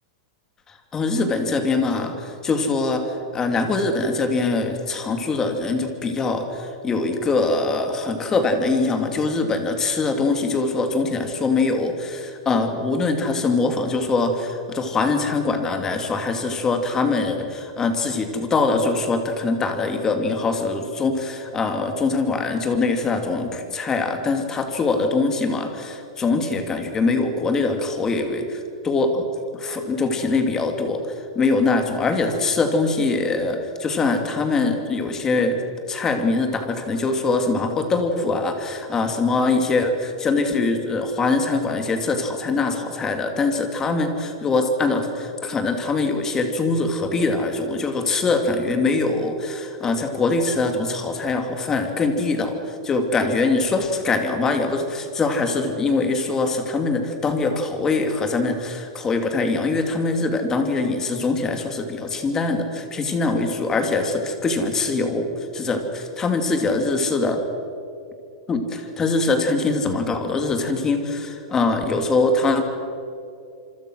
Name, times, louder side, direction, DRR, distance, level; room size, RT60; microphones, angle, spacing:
voice 1, 0.7-29.3 29.5-35.6 35.9-65.3 65.5-67.4 68.5-72.6, left 3 dB, 15° left, 6 dB, 2.5 m, -23 dB
27.0 x 25.0 x 6.3 m, 2.5 s
supercardioid pair, 165°, 4 cm